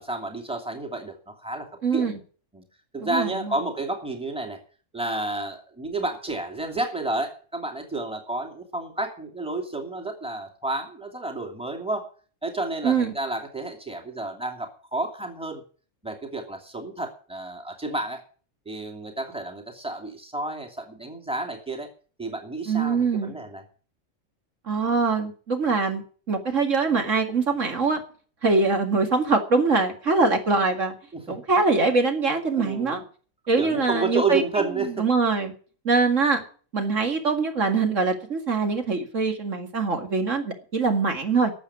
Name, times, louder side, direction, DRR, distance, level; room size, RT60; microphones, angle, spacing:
voice 1, 0.0-1.7 1.9-2.1 2.5-2.6 2.9-4.6 4.9-12.1 12.4-15.6 16.0-18.2 18.7-21.9 22.2-23.6 31.1-31.4 32.5-33.0 33.6-35.0, right 2 dB, 5° right, 3 dB, 2.6 m, -30 dB
voice 2, 1.8-2.2 3.0-3.5 12.8-13.1 22.7-23.4 24.7-26.0 26.3-28.0 28.4-30.9 31.3-33.0 33.5-34.4 35.0-35.5 35.8-36.4 36.7-41.5, right 4 dB, 65° right, 5 dB, 2.4 m, -23 dB
12.5 x 7.5 x 9.7 m, 0.41 s
omnidirectional pair, 1.4 m